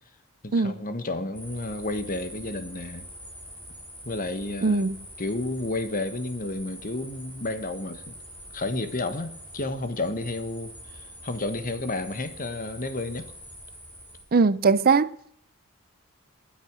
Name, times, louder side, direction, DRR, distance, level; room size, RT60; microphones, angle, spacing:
voice 1, 0.4-3.1 4.0-4.8 5.2-8.2 8.5-13.3, left 2 dB, 40° left, 1.5 m, -31 dB
sound 1, 1.3-14.2, equal, 10° left, 5.4 m, -44 dB
voice 2, 4.6-5.0 14.3-15.1, right 4 dB, 45° right, 0.5 m, -20 dB
23.0 x 8.1 x 6.2 m
head